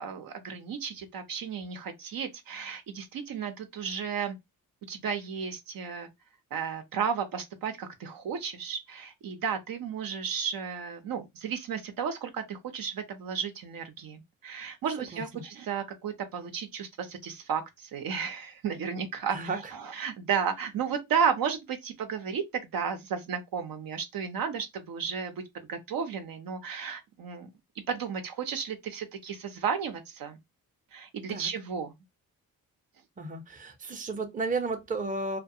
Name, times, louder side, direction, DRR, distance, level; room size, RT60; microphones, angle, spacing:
voice 1, 0.0-4.4 4.9-6.1 6.5-25.4 25.7-27.5 27.9-30.4 30.9-31.9, right 7 dB, 70° right, 0.6 m, -33 dB
voice 2, 15.1-15.4 19.3-19.6 31.3-31.5 33.2-35.4, right 3 dB, 20° right, 0.6 m, -33 dB
2.3 x 2.2 x 2.6 m
cardioid pair, 65°, 36 cm